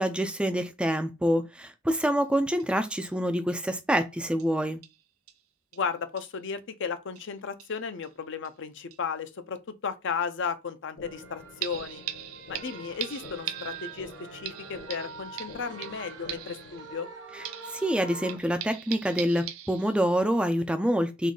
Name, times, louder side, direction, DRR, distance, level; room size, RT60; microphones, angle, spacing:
voice 1, 0.0-4.8 17.3-17.4 17.7-21.3, equal, 5° right, 0.3 m, -26 dB
sound 1, 2.2-2.3 2.6-2.7 3.1-3.2 3.5-3.6 4.4-4.5 4.8-5.0 5.3-5.4 5.7-5.8 6.2-6.3 7.2-7.3 7.6-8.1 8.4-8.5 8.9-9.0 11.6-17.2 17.4-20.2 20.7-20.8, right 11 dB, 80° right, 0.5 m, -41 dB
voice 2, 5.7-12.0 12.5-17.1, left 6 dB, 60° left, 0.6 m, -34 dB
sound 2, 11.0-17.0, left 2 dB, 85° left, 1.4 m, -48 dB
sound 3, 11.0-18.4, right 5 dB, 60° right, 0.8 m, -45 dB
3.7 x 3.1 x 3.7 m
head